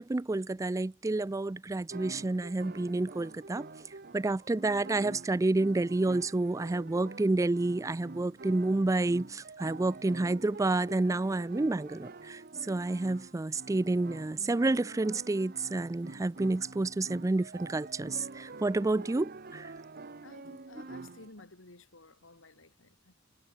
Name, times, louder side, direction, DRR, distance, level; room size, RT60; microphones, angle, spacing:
voice 1, 0.0-3.9 4.1-19.7, right 2 dB, 15° right, 0.3 m, -29 dB
sound 1, 1.9-21.3, right 3 dB, 45° right, 1.0 m, -47 dB
voice 2, 20.2-23.1, left 2 dB, 65° left, 2.6 m, -54 dB
head